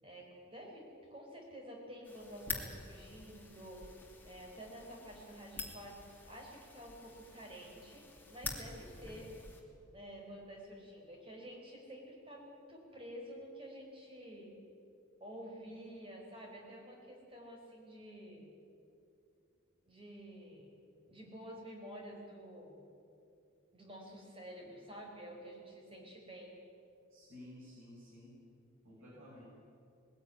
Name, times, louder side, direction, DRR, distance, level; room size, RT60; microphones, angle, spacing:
voice 1, 0.0-3.8 4.2-9.3 9.9-14.5 15.2-18.4 19.9-20.7 21.1-22.8 23.7-26.6, equal, 25° right, 0 dB, 4.8 m, -50 dB
sound 1, 2.0-9.6, left 3 dB, 10° left, 2.7 m, -47 dB
voice 2, 27.1-28.4 28.8-29.4, left 1 dB, 85° right, -6 dB, 6.6 m, -53 dB
20.5 x 16.5 x 9.6 m, 2.6 s
head